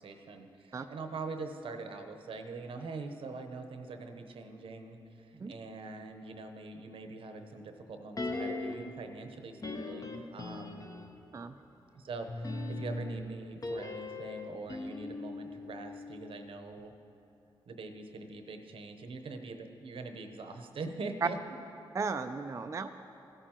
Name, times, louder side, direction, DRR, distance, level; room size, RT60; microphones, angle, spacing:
voice 1, 0.0-10.9 11.9-16.9 17.7-21.4, right 3 dB, 70° right, 6 dB, 0.8 m, -43 dB
sound 1, 8.2-9.0 9.6-11.3 12.3-16.5 16.8-16.9, left 2 dB, 40° left, 0.8 m, -39 dB
voice 2, 21.9-22.9, right 4 dB, 30° right, 7 dB, 0.4 m, -36 dB
15.5 x 8.7 x 2.9 m, 2.8 s
cardioid pair, 55°, 10 cm